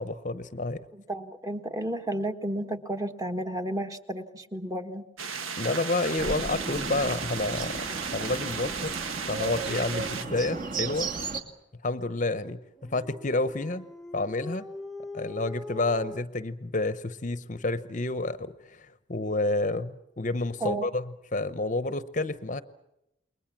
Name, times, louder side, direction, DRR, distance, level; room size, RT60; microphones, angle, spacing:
voice 1, 0.0-0.8 5.6-7.8 8.1-8.9 9.3-11.1 11.8-13.9 14.1-14.6 15.1-21.0 21.3-22.6, left 2 dB, 40° left, 13 dB, 0.8 m, -29 dB
voice 2, 0.9-5.0 20.6-20.9, right 1 dB, 15° right, 6 dB, 1.5 m, -32 dB
sound 1, 5.2-10.3, right 6 dB, 85° right, 1.6 m, -35 dB
Bird, 6.2-11.4, right 4 dB, 40° right, 2.3 m, -35 dB
Dog, 12.8-16.2, left 2 dB, ahead, 0.9 m, -42 dB
29.0 x 22.0 x 7.4 m, 0.87 s
head